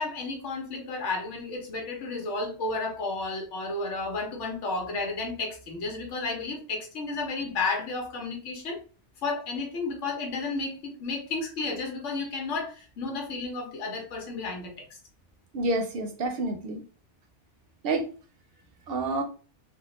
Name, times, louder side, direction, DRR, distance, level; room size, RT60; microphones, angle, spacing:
voice 1, 0.0-8.8 9.2-15.0, left 3 dB, 85° left, 2 dB, 1.2 m, -32 dB
voice 2, 15.5-16.8 17.8-18.0 18.9-19.2, right 2 dB, 60° right, 5 dB, 0.8 m, -28 dB
3.5 x 2.1 x 2.9 m, 0.37 s
omnidirectional pair, 1.2 m